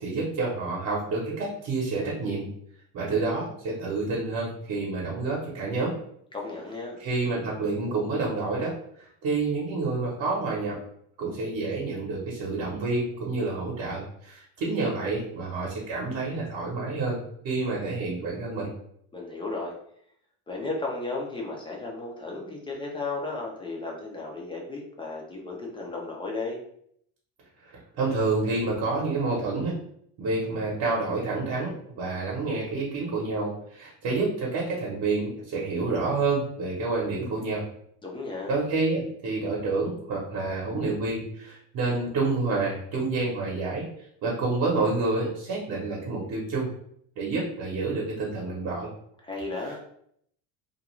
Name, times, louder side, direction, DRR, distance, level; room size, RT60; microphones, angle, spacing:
voice 1, 0.0-2.5 2.9-5.9 7.0-8.7 9.0-10.8 11.2-18.7 28.0-29.8 30.2-37.6 38.5-43.8 44.2-46.7 47.2-48.9, right 3 dB, 50° right, -3 dB, 0.9 m, -28 dB
voice 2, 6.3-7.0 19.1-19.7 20.5-26.6 38.0-38.5 49.2-49.8, left 3 dB, 15° left, -1 dB, 0.4 m, -34 dB
2.5 x 2.2 x 3.0 m, 0.68 s
cardioid pair, 130°, 43 cm